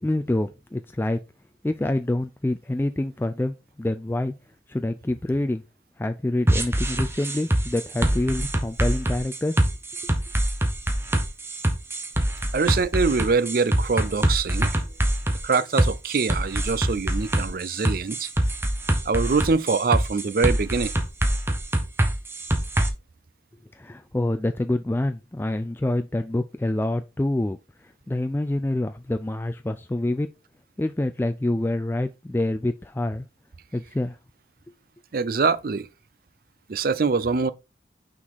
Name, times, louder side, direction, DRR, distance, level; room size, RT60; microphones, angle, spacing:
voice 1, 0.0-1.2 1.6-4.3 4.7-5.6 6.0-9.6 10.0-10.1 23.7-30.3 30.8-33.3 33.7-34.2, left 1 dB, 10° left, 0.3 m, -26 dB
sound 1, 6.5-22.9, right 1 dB, 15° right, 0.9 m, -24 dB
voice 2, 12.5-14.7 15.4-18.3 19.1-20.9 35.1-35.9 36.7-37.5, right 4 dB, 50° right, 0.5 m, -24 dB
6.1 x 4.0 x 4.5 m
head